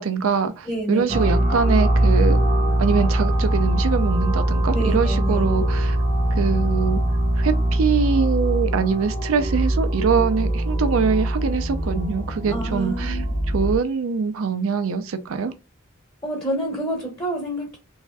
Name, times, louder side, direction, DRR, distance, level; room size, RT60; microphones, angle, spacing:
voice 1, 0.0-2.4 2.8-6.0 6.4-7.0 7.4-13.2 13.5-15.5, right 5 dB, 70° right, 0.4 m, -23 dB
voice 2, 0.6-1.4 4.7-5.5 12.5-13.4 16.2-17.8, right 1 dB, 20° left, 0.8 m, -28 dB
sound 1, 1.1-13.8, right 1 dB, 45° right, 0.8 m, -22 dB
3.3 x 2.5 x 2.2 m
head